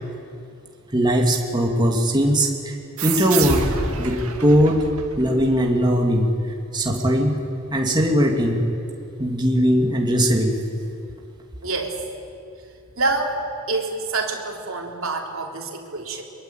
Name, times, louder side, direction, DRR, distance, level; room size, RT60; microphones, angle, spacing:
voice 1, 0.9-2.7 3.0-3.7 4.0-4.8 5.2-6.3 6.7-7.4 7.7-8.6 9.2-10.6, equal, 20° right, 0 dB, 2.3 m, -19 dB
sound 1, 3.0-6.2, right 4 dB, 85° right, 2.2 m, -28 dB
voice 2, 11.6-12.0 13.0-13.4 13.7-16.2, right 3 dB, 65° right, 1 dB, 3.5 m, -26 dB
23.5 x 22.5 x 9.1 m, 2.5 s
head